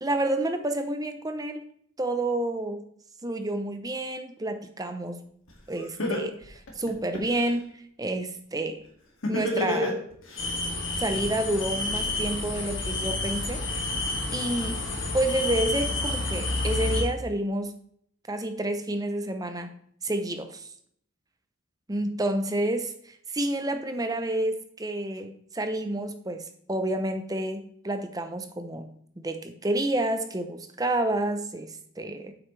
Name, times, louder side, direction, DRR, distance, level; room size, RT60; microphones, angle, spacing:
voice 1, 0.0-1.6 2.0-2.8 3.2-5.2 5.7-8.8 9.3-10.0 11.0-13.6 14.3-14.8 15.1-17.7 18.3-19.7 20.0-20.7 21.9-22.8 23.3-28.9 29.2-32.3, right 1 dB, 15° right, 8 dB, 0.7 m, -29 dB
Laughter, 5.5-5.6 6.0-7.5 9.2-10.4, left 2 dB, 70° left, 2.2 m, -28 dB
sound 1, 10.4-17.0, left 2 dB, 55° left, 2.0 m, -29 dB
9.2 x 7.7 x 3.3 m, 0.65 s
head